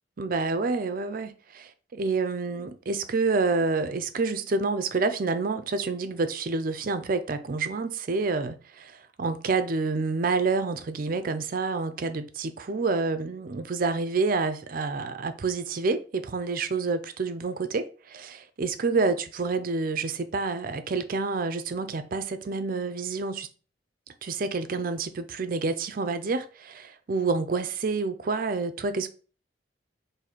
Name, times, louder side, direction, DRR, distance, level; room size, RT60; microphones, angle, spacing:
voice 1, 0.2-23.5 24.2-29.1, right 4 dB, 50° right, 0.5 m, -28 dB
4.0 x 2.6 x 4.4 m
head